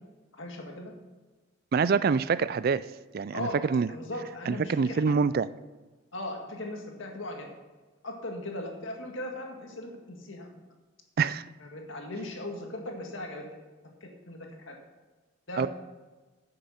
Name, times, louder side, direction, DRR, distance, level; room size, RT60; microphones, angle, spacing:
voice 1, 0.3-0.9 3.3-3.6 3.9-5.1 6.1-7.5 8.0-10.5 11.6-13.4 14.0-14.7 15.5-15.7, left 1 dB, 75° left, 2 dB, 1.9 m, -38 dB
voice 2, 1.7-2.8 3.1-3.9 4.5-5.5 11.2-11.4 15.6-15.7, right 5 dB, 50° right, 17 dB, 0.4 m, -25 dB
9.7 x 6.7 x 6.2 m, 1.2 s
head